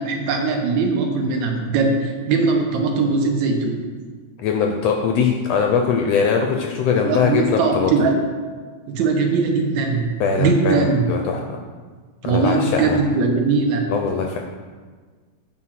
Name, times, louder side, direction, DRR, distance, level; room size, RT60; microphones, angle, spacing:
voice 1, 0.0-3.8 6.9-8.2 8.9-11.1 12.2-13.9, right 4 dB, 80° right, 3 dB, 2.2 m, -20 dB
voice 2, 4.4-7.9 10.2-11.6 12.2-13.0 13.9-14.4, left 6 dB, 75° left, 3 dB, 1.5 m, -21 dB
8.5 x 4.5 x 5.8 m, 1.5 s
omnidirectional pair, 3.3 m